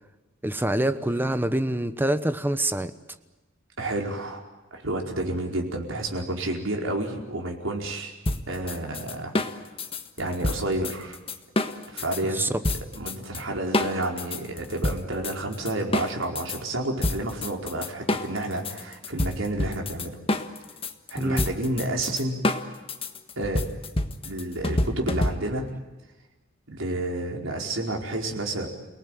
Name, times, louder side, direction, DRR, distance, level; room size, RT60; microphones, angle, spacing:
voice 1, 0.4-2.9 12.3-12.5 21.2-21.5, right 1 dB, 10° right, 11 dB, 1.0 m, -25 dB
voice 2, 3.8-4.4 4.7-8.1 8.5-9.4 10.2-11.2 11.9-12.4 12.9-20.1 21.1-22.4 23.4-23.6 24.2-25.7 26.7-28.7, right 1 dB, 80° right, 1 dB, 4.8 m, -30 dB
sound 1, 8.3-12.2 12.6-13.4 13.7-16.6 17.0-25.7, left 1 dB, 30° left, 1.5 m, -28 dB
29.5 x 19.0 x 9.3 m, 1.2 s
head